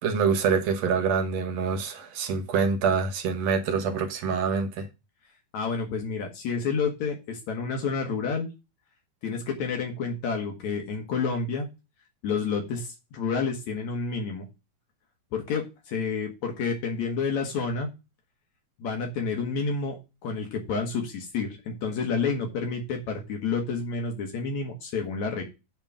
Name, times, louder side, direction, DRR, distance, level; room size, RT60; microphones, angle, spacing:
voice 1, 0.0-4.9, right 5 dB, 65° right, 2.3 m, -25 dB
voice 2, 5.5-8.5 9.2-11.7 12.2-14.5 15.3-17.9 18.8-20.0 20.2-25.4, left 5 dB, 70° left, 2.5 m, -29 dB
9.0 x 3.7 x 7.1 m
omnidirectional pair, 3.5 m